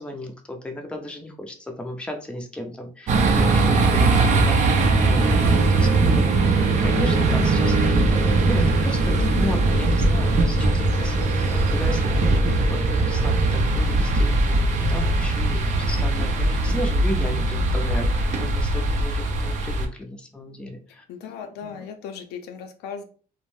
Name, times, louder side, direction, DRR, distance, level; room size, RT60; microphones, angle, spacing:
voice 1, 0.0-21.1 21.6-21.9, left 1 dB, 5° left, 3 dB, 0.5 m, -34 dB
sound 1, 3.1-19.9, right 2 dB, 45° right, 0.5 m, -20 dB
voice 2, 5.7-6.2 21.1-23.0, left 7 dB, 80° left, 5 dB, 0.5 m, -37 dB
2.5 x 2.0 x 3.1 m, 0.40 s
cardioid pair, 110°, 17 cm